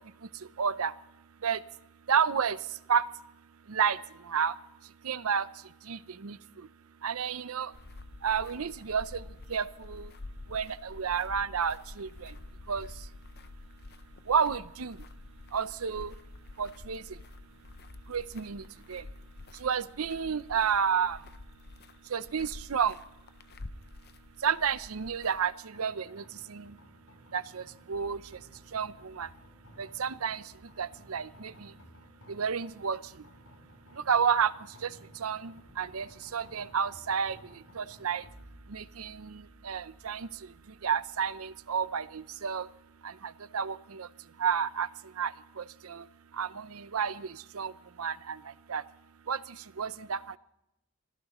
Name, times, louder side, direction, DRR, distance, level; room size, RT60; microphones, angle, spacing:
voice 1, 0.6-0.9 1.4-1.6 2.1-2.6 2.9-3.0 3.7-4.0 4.3-4.5 5.0-5.5 5.9-6.4 7.0-7.7 8.2-9.2 9.5-10.1 10.5-12.3 12.7-12.9 14.3-15.0 15.5-16.1 16.6-17.0 18.1-18.6 18.9-19.0 19.6-21.2 22.1-22.9 24.4-26.2 26.5-26.6 27.3-27.6 27.9-28.2 28.7-29.3 29.8-30.4 30.8-31.5 32.3-33.0 34.1-34.5 34.8-34.9 35.2-36.1 36.3-37.4 37.8-38.2 38.7-40.3 40.8-42.7 43.5-44.1 44.4-44.9 45.2-45.3 45.6-46.0 46.4-47.3 47.5-47.7 48.0-48.4 48.7-48.8 49.3-49.4 49.8-50.2, right 7 dB, 80° right, 16 dB, 0.6 m, -30 dB
sound 1, 7.7-25.5, left 2 dB, 50° left, 0.7 m, -48 dB
sound 2, 25.7-42.9, equal, 65° left, 7.0 m, -56 dB
25.0 x 15.5 x 3.1 m, 0.87 s
head